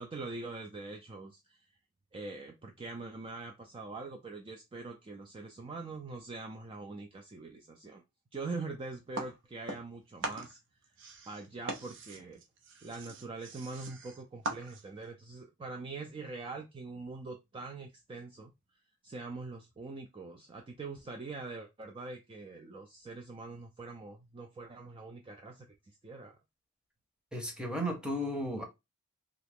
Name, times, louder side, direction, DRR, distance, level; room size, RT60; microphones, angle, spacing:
voice 1, 0.0-1.6 2.1-8.0 8.3-10.6 11.3-12.4 12.8-18.5 19.0-25.7 26.0-26.4, right 3 dB, 25° right, 0.3 m, -43 dB
sound 1, 9.1-10.0 10.2-15.1, right 2 dB, 60° right, 0.7 m, -41 dB
voice 2, 27.3-28.7, equal, 5° right, 0.8 m, -34 dB
2.8 x 2.4 x 3.4 m
head